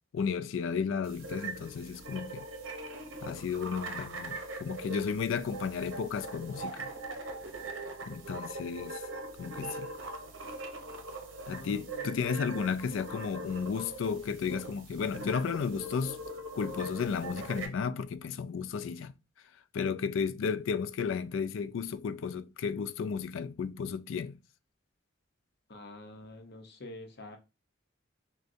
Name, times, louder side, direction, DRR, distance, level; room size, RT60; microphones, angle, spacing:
voice 1, 0.1-2.5 3.2-6.9 8.1-9.0 9.4-9.9 11.5-16.2 16.6-19.1 19.7-24.4, left 6 dB, 80° left, 0.4 m, -33 dB
sound 1, 1.0-17.7, right 2 dB, 80° right, 0.8 m, -41 dB
voice 2, 11.5-12.3 25.7-27.4, left 1 dB, 55° left, 0.8 m, -47 dB
6.3 x 2.2 x 2.6 m
head